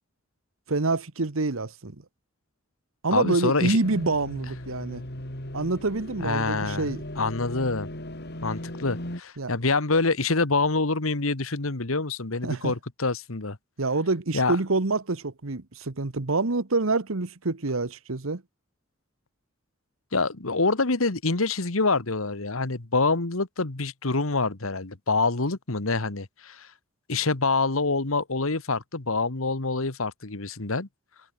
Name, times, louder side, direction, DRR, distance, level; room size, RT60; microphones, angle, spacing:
voice 1, 0.7-2.0 3.0-5.0 5.5-7.0 9.4-9.5 12.4-12.7 13.8-18.4, right 3 dB, 80° right, 1.3 m, -27 dB
voice 2, 3.1-3.8 6.2-7.9 8.4-13.6 14.3-14.6 20.1-26.7 27.1-30.9, left 3 dB, 80° left, 1.8 m, -26 dB
sound 1, 3.8-9.2, left 1 dB, 55° left, 4.7 m, -37 dB
head